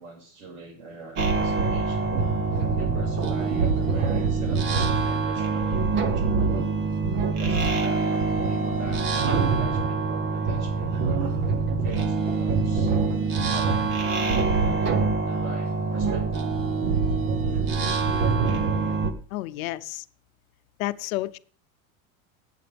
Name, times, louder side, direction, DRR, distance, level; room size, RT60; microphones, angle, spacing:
voice 1, 0.0-2.2 2.8-6.8 7.4-11.3 11.8-12.9 13.4-14.0 14.8-16.5, right 4 dB, 90° right, 0 dB, 5.8 m, -43 dB
sound 1, 1.2-19.1, right 4 dB, 25° right, 0.8 m, -24 dB
voice 2, 19.3-20.0 20.8-21.4, left 17 dB, 70° left, 13 dB, 0.7 m, -30 dB
18.5 x 8.5 x 3.4 m, 0.43 s
supercardioid pair, 175°, 43 cm